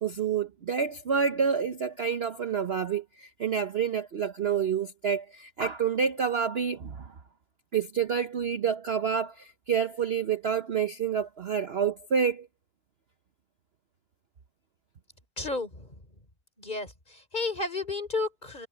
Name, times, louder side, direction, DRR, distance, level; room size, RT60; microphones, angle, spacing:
voice 1, 0.0-7.1 7.7-12.5, right 7 dB, 45° right, 1.0 m, -28 dB
voice 2, 15.4-16.0 16.6-18.7, left 3 dB, 25° left, 3.8 m, -32 dB
omnidirectional pair, 1.7 m